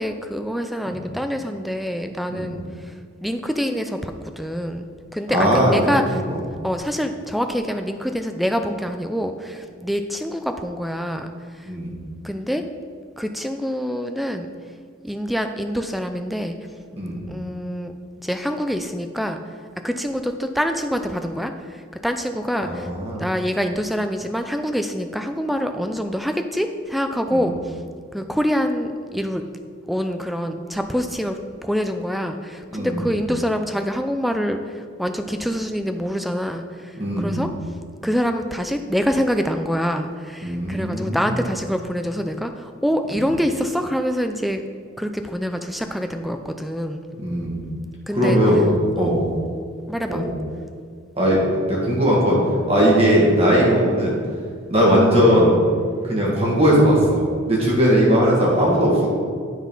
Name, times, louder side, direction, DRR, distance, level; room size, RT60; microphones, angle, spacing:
voice 1, 0.0-2.9 3.2-4.9 5.1-6.2 6.6-11.3 11.6-11.7 12.2-12.6 13.2-14.5 15.0-16.6 17.3-17.9 18.2-19.4 19.8-22.9 23.2-27.7 28.1-29.4 29.9-37.5 38.0-44.6 45.0-47.0 48.1-48.4 49.0-49.1 49.9-50.3, equal, ahead, 6 dB, 0.3 m, -25 dB
voice 2, 5.3-6.2 11.6-12.0 17.0-17.2 22.6-23.2 27.3-27.4 32.7-33.1 37.0-37.4 40.4-41.2 43.1-43.2 47.2-47.6 48.1-48.6 49.0-49.2 50.1-50.3 51.2-51.4 51.7-52.4 52.7-54.1 54.7-55.5 56.0-57.2 57.5-58.9, equal, 30° right, -4 dB, 1.6 m, -18 dB
9.6 x 4.0 x 5.3 m, 2.1 s
head